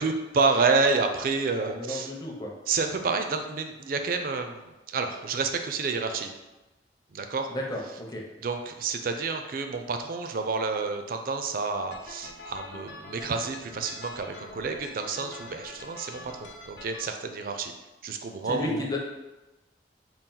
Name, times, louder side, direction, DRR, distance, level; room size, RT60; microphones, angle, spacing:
voice 1, 0.0-2.1 2.7-6.3 7.1-7.5 8.4-17.7 18.0-18.9, right 4 dB, 55° right, 6 dB, 0.4 m, -29 dB
voice 2, 1.6-2.5 7.5-8.2 18.4-19.0, left 1 dB, 20° left, -1 dB, 0.6 m, -33 dB
sound 1, 11.9-17.1, left 2 dB, 75° left, 0.5 m, -44 dB
4.1 x 2.4 x 3.8 m, 1.0 s
head